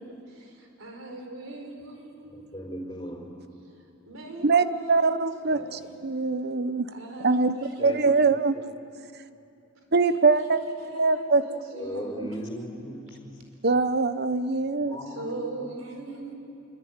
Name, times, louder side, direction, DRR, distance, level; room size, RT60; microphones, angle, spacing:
voice 1, 0.8-2.0 2.2-2.4 4.1-5.7 6.9-8.5 9.9-10.2 10.5-12.4 15.1-16.3, right 2 dB, 80° right, 3 dB, 4.7 m, -39 dB
voice 2, 2.3-3.3 7.8-8.1 8.5-8.6 11.7-13.4 14.9-15.7, equal, 20° left, -1 dB, 4.6 m, -38 dB
voice 3, 4.4-6.9 7.2-8.6 9.9-10.6 10.9-11.4 12.2-12.3 13.6-15.0, right 4 dB, 55° right, 12 dB, 0.9 m, -23 dB
26.5 x 24.0 x 9.5 m, 2.7 s
head